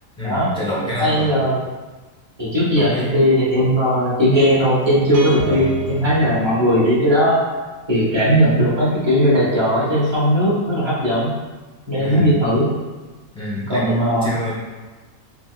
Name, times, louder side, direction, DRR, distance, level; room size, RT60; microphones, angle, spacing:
voice 1, 0.2-1.5 2.8-3.2 11.9-12.4 13.3-14.6, left 1 dB, 5° left, -8 dB, 0.4 m, -27 dB
voice 2, 1.0-1.6 2.4-7.4 7.9-11.3 11.9-12.7 13.7-14.3, equal, 25° right, -8 dB, 0.7 m, -17 dB
sound 1, 5.1-7.1, right 3 dB, 85° right, 1.0 m, -29 dB
3.2 x 2.7 x 2.3 m, 1.3 s
omnidirectional pair, 1.4 m